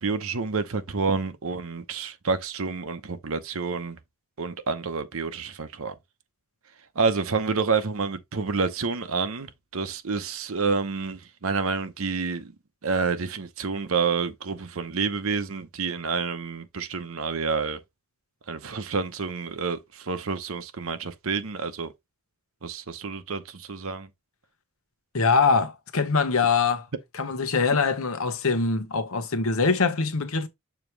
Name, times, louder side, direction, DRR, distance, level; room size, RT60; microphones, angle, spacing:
voice 1, 0.0-4.0 4.4-5.9 7.0-12.5 12.8-17.8 18.5-21.9 22.6-24.1, right 4 dB, 70° right, 0.8 m, -28 dB
voice 2, 25.1-26.9 27.1-30.5, left 4 dB, 70° left, 1.0 m, -23 dB
7.1 x 3.0 x 4.5 m
head